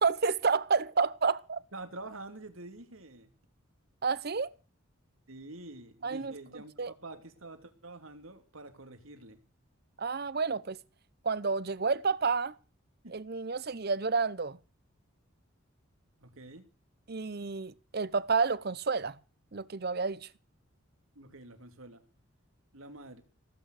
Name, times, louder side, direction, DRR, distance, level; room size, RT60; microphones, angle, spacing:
voice 1, 0.0-1.6 4.0-4.5 6.0-6.3 6.8-6.9 10.0-10.8 11.2-12.5 13.1-14.6 17.1-19.2 19.5-20.3, right 4 dB, 50° right, 0.7 m, -30 dB
voice 2, 1.7-3.3 5.3-9.4 13.0-13.2 16.2-16.7 21.1-22.0 22.7-23.2, right 2 dB, 80° right, 2.8 m, -47 dB
18.0 x 9.3 x 6.5 m
head